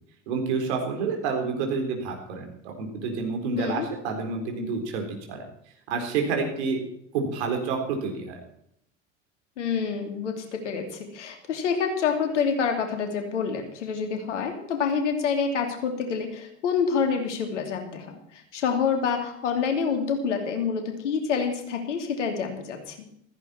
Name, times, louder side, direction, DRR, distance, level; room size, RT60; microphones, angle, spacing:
voice 1, 0.3-2.5 2.8-5.4 5.9-6.8 7.1-8.4, right 4 dB, 60° right, 2 dB, 4.2 m, -28 dB
voice 2, 3.6-3.9 9.6-23.1, left 6 dB, 70° left, 5 dB, 2.9 m, -27 dB
15.5 x 14.5 x 4.4 m, 0.72 s
figure-of-eight pair, 70°, 37 cm